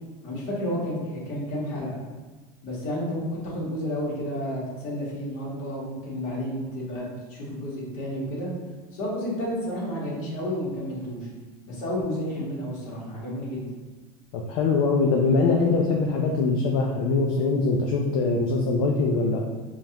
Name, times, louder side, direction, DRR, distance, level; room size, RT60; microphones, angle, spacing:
voice 1, 0.2-2.0 2.6-8.5 8.9-11.3 11.7-13.6, equal, 40° left, -6 dB, 1.4 m, -31 dB
voice 2, 14.3-19.4, left 3 dB, 60° left, 0 dB, 0.5 m, -23 dB
5.0 x 2.4 x 2.8 m, 1.3 s
supercardioid pair, 160°, 19 cm